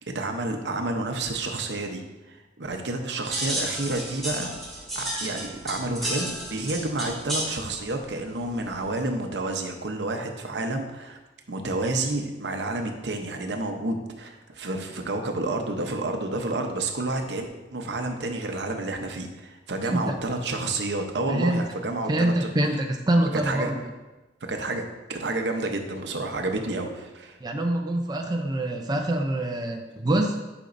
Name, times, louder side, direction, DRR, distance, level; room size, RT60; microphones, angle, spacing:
voice 1, 0.1-2.0 2.3-4.6 4.9-11.2 11.5-17.5 17.7-22.5 23.4-23.7 24.4-24.8 25.1-27.4, right 2 dB, 70° right, 4 dB, 0.8 m, -30 dB
sound 1, 3.3-9.0, right 1 dB, ahead, 2.4 m, -33 dB
voice 2, 21.3-21.6 22.1-23.8 27.4-30.4, right 1 dB, 25° right, 2 dB, 0.5 m, -25 dB
9.8 x 5.2 x 2.6 m, 1.1 s
head